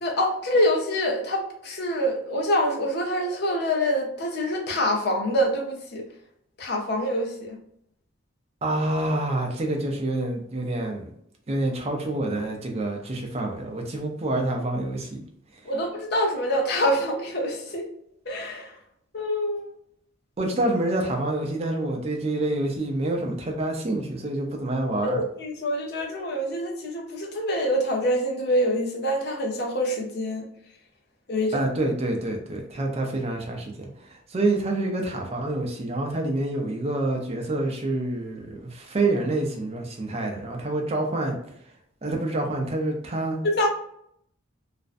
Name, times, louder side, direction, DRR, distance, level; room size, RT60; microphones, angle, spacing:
voice 1, 0.0-6.0 6.6-7.6 15.6-17.9 18.3-18.7 19.1-19.7 25.0-30.5 31.3-31.6 43.4-43.7, equal, 55° left, 1 dB, 0.6 m, -25 dB
voice 2, 8.6-11.1 11.5-15.2 20.4-25.2 31.5-33.9 34.3-41.4 42.0-43.4, right 2 dB, 30° right, 2 dB, 0.5 m, -27 dB
2.5 x 2.1 x 2.4 m, 0.69 s
head